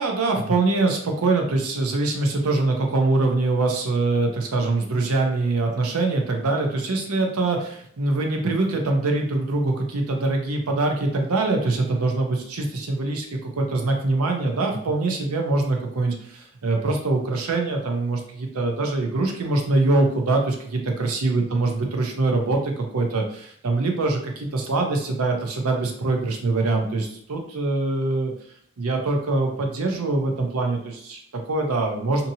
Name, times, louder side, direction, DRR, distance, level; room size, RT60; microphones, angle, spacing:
voice 1, 0.0-28.3 28.8-32.3, right 2 dB, 75° right, 2 dB, 0.6 m, -23 dB
2.7 x 2.7 x 2.7 m, 0.65 s
head